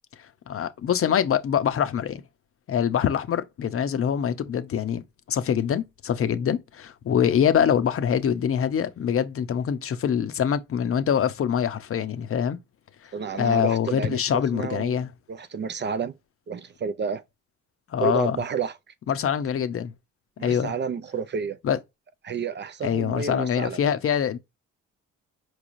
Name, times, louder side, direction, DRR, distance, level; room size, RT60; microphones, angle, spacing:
voice 1, 0.5-2.2 2.7-12.6 13.4-15.1 17.9-18.4 19.1-19.9 20.4-20.7 21.6-21.8 22.8-24.4, left 8 dB, 50° left, 0.7 m, -24 dB
voice 2, 13.1-16.2 16.5-17.2 18.0-18.8 20.4-21.6 22.2-23.8, right 6 dB, 35° right, 0.4 m, -30 dB
4.7 x 3.1 x 2.5 m
cardioid pair, 90°, 30 cm